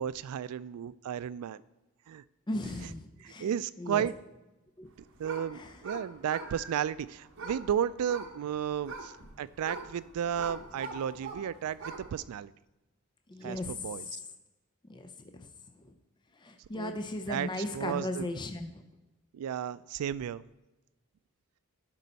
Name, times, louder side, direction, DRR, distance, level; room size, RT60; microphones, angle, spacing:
voice 1, 0.0-1.6 2.1-2.2 2.8-2.9 3.2-4.2 5.2-12.5 13.4-14.2 16.7-17.0 17.3-17.5 17.7-18.3 19.3-20.4, right 9 dB, 80° right, 18 dB, 0.3 m, -33 dB
voice 2, 2.5-3.5 3.8-4.1 4.8-4.9 5.5-5.8 13.3-13.9 14.9-15.5 15.8-15.9 16.4-18.8, left 1 dB, 20° left, 7 dB, 0.4 m, -37 dB
sound 1, 4.9-12.2, right 3 dB, 60° right, 1.1 m, -44 dB
10.5 x 5.5 x 4.0 m, 1.0 s
head